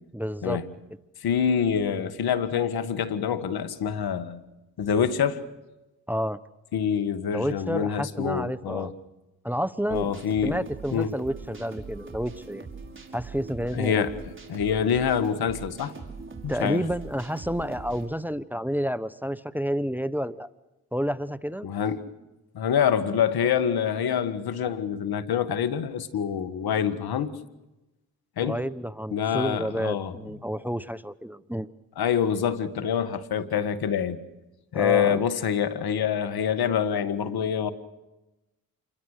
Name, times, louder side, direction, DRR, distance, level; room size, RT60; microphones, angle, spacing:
voice 1, 0.1-0.6 6.1-6.4 7.3-8.9 9.4-10.1 10.4-12.7 13.1-14.2 16.5-20.5 20.9-21.7 28.4-31.7 34.7-35.2, equal, 5° right, 1.0 m, -30 dB
voice 2, 1.2-4.4 4.8-5.4 6.7-8.9 9.9-10.6 10.9-11.1 13.7-14.1 14.5-15.9 16.4-16.8 21.6-22.0 22.5-27.3 28.4-28.6 29.1-30.1 32.0-34.2 34.7-37.7, left 8 dB, 70° left, 1.8 m, -26 dB
sound 1, 9.9-18.1, right 4 dB, 30° right, 5.5 m, -42 dB
28.5 x 22.0 x 6.6 m
supercardioid pair, 50°, 38 cm